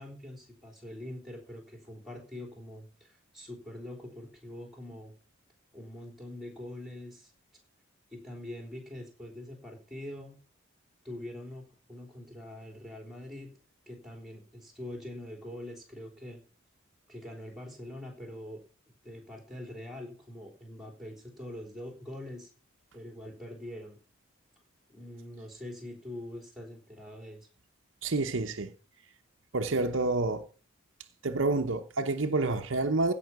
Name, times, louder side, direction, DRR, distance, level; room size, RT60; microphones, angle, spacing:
voice 1, 0.0-5.1 5.7-7.3 8.1-10.4 11.0-13.5 13.9-16.4 17.1-18.6 18.9-22.5 22.9-24.0 24.9-27.5, left 1 dB, ahead, 3.5 m, -44 dB
voice 2, 28.0-28.7 29.5-30.5 31.2-33.1, right 3 dB, 65° right, 0.8 m, -28 dB
16.0 x 5.6 x 6.0 m
head